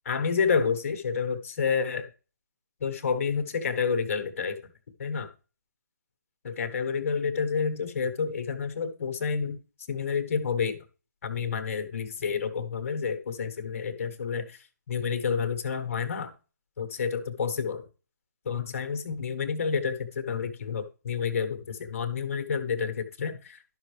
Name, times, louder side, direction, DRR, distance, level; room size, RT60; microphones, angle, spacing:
voice 1, 0.0-2.1 2.8-4.6 5.0-5.3 6.4-9.6 9.9-10.8 11.2-14.6 14.9-16.3 16.8-17.8 18.4-23.8, left 6 dB, 45° left, 7 dB, 1.3 m, -29 dB
11.5 x 5.7 x 3.3 m, 0.34 s
hypercardioid pair, 155°, 10 cm